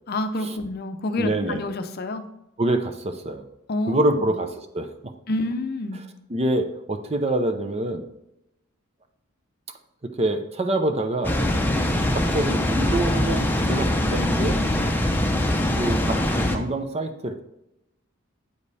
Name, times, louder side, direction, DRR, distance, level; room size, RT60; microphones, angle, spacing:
voice 1, 0.1-2.2 3.7-4.3 5.3-6.0, left 2 dB, 45° left, 7 dB, 0.6 m, -28 dB
voice 2, 1.2-1.6 2.6-3.4 3.9-4.5 4.7-5.1 6.3-8.0 10.0-11.4 12.1-14.6 15.8-17.4, right 1 dB, 30° right, 7 dB, 0.6 m, -26 dB
Water, 11.2-16.6, left 1 dB, 10° left, 0.7 m, -23 dB
8.5 x 5.2 x 4.1 m, 0.85 s
head